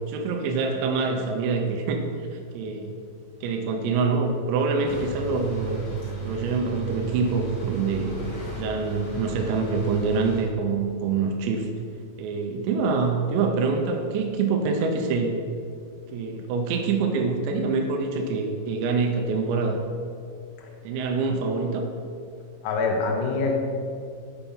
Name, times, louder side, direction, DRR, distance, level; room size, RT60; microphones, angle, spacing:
voice 1, 0.1-2.9 3.4-5.8 6.2-8.2 8.6-11.7 12.2-15.5 16.1-19.8 20.8-21.9, right 4 dB, 85° right, 2 dB, 2.9 m, -25 dB
sound 1, 4.8-10.4, right 4 dB, 40° left, 1.8 m, -34 dB
voice 2, 22.6-23.6, left 4 dB, 75° left, 1 dB, 2.0 m, -25 dB
7.0 x 5.9 x 5.4 m, 2.3 s
omnidirectional pair, 5.2 m